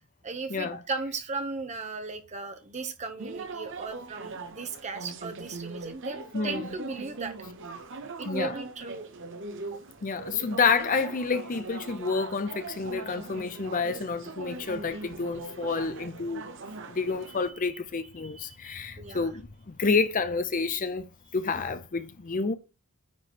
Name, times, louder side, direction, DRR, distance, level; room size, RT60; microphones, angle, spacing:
voice 1, 0.2-7.3 8.2-9.1 9.7-9.8 17.3-17.5 18.2-19.3, right 3 dB, 30° right, 1.0 m, -37 dB
sound 1, 3.2-17.5, right 3 dB, 55° right, 0.9 m, -41 dB
voice 2, 6.3-6.7 8.3-8.5 10.0-16.4 16.9-22.5, left 4 dB, 35° left, 0.6 m, -29 dB
9.5 x 3.2 x 4.3 m
head